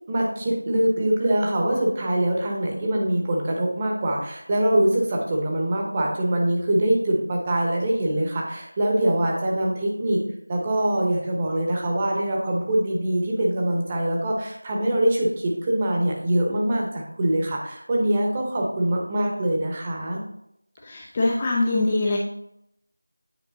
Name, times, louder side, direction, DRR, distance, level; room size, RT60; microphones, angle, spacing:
voice 1, 0.1-10.2 10.5-20.2, right 1 dB, 15° right, -1 dB, 0.9 m, -23 dB
voice 2, 20.8-22.2, left 2 dB, 15° left, -2 dB, 0.5 m, -23 dB
8.9 x 5.0 x 2.8 m, 0.78 s
figure-of-eight pair, 170°, 0 cm